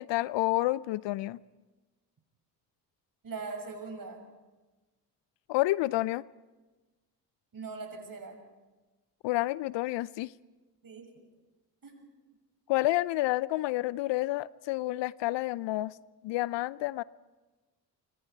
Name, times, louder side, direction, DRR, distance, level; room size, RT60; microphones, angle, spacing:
voice 1, 0.0-1.4 5.5-6.2 9.2-10.3 12.7-16.0 16.2-17.0, left 17 dB, 65° left, 21 dB, 0.6 m, -29 dB
voice 2, 3.2-4.2 7.5-8.4 10.8-11.1 11.8-12.0, right 4 dB, 45° right, 4 dB, 6.8 m, -41 dB
26.0 x 25.5 x 4.7 m, 1.2 s
hypercardioid pair, 45°, 47 cm